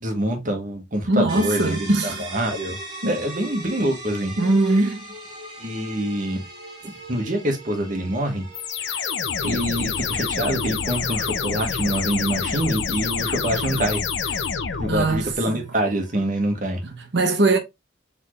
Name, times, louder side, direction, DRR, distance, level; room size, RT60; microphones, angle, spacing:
voice 1, 0.0-2.8 3.0-4.3 4.8-4.9 5.6-6.4 6.8-8.4 8.8-9.1 9.4-14.5 14.8-16.8, right 1 dB, 45° right, 1.3 m, -26 dB
voice 2, 1.1-2.3 3.0-3.1 4.4-5.0 14.9-15.7 16.8-17.6, right 2 dB, 65° right, 1.0 m, -21 dB
sound 1, 1.3-16.8, right 2 dB, 25° right, 2.2 m, -41 dB
sound 2, 8.5-15.4, left 6 dB, 75° left, 0.7 m, -27 dB
4.2 x 3.6 x 3.0 m
head